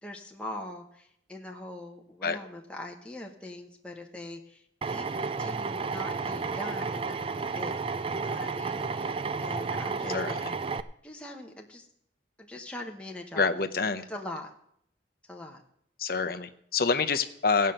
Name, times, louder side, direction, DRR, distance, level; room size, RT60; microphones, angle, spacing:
voice 1, 0.0-7.8 8.1-10.2 11.0-11.9 12.4-13.5 14.1-14.5 15.3-15.6, left 1 dB, 5° left, 1 dB, 1.0 m, -42 dB
Drill, 4.8-10.8, right 4 dB, 30° right, 0.4 m, -32 dB
voice 2, 10.1-10.5 13.3-14.0 16.0-17.7, left 4 dB, 55° left, 9 dB, 0.7 m, -27 dB
16.0 x 5.6 x 7.7 m, 0.70 s
head